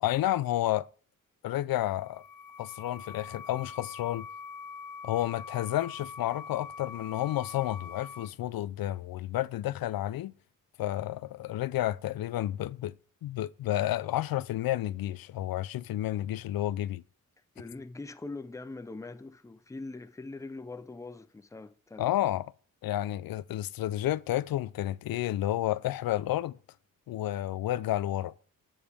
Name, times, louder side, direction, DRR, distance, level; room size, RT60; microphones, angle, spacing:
voice 1, 0.0-0.9 1.4-2.2 2.6-4.3 5.0-10.3 10.8-12.9 13.2-17.0 22.0-22.5 22.8-26.5 27.1-28.3, left 14 dB, 85° left, 0.5 m, -31 dB
sound 1, 1.8-8.3, left 5 dB, 70° left, 1.8 m, -44 dB
voice 2, 17.6-22.1, left 3 dB, 10° left, 0.6 m, -42 dB
18.5 x 7.1 x 3.5 m
wide cardioid pair, 145°, 34 cm